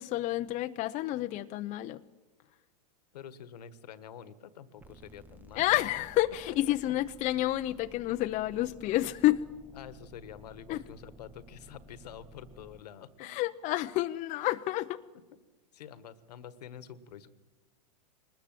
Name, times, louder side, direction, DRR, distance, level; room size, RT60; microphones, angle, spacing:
voice 1, 0.0-2.0 5.6-9.4 10.7-10.8 13.2-15.0, left 15 dB, 35° left, 0.7 m, -29 dB
voice 2, 3.1-5.7 6.5-6.7 9.7-13.3 15.7-17.3, left 8 dB, 70° left, 1.5 m, -47 dB
sound 1, 4.8-12.8, equal, 10° right, 1.0 m, -55 dB
22.0 x 20.0 x 7.6 m
hypercardioid pair, 105°, 21 cm